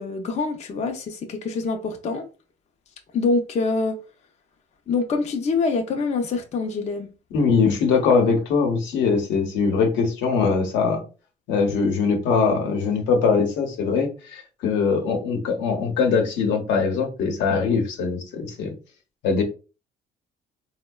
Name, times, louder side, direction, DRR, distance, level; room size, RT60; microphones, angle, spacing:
voice 1, 0.0-2.3 3.1-4.0 4.9-7.1, left 4 dB, 35° left, 0.5 m, -25 dB
voice 2, 7.3-11.0 11.5-18.7 19.2-19.4, left 5 dB, 85° left, 0.8 m, -22 dB
3.5 x 2.1 x 2.2 m
cardioid pair, 110°, 19 cm